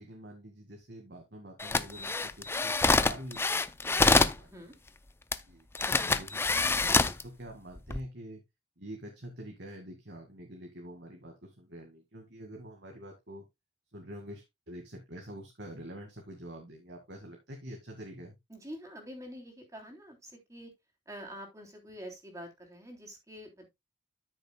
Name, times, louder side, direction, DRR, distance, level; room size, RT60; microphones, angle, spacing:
voice 1, 0.0-4.5 5.4-8.4 8.8-13.4 13.9-18.4, equal, 65° right, 2.0 m, -46 dB
sound 1, 1.6-4.4 5.3-5.4 5.8-7.2 7.8-8.0, left 3 dB, 15° left, 0.4 m, -26 dB
voice 2, 4.4-4.7 18.5-20.7 21.1-23.7, equal, 15° right, 3.3 m, -46 dB
13.0 x 6.6 x 2.3 m
head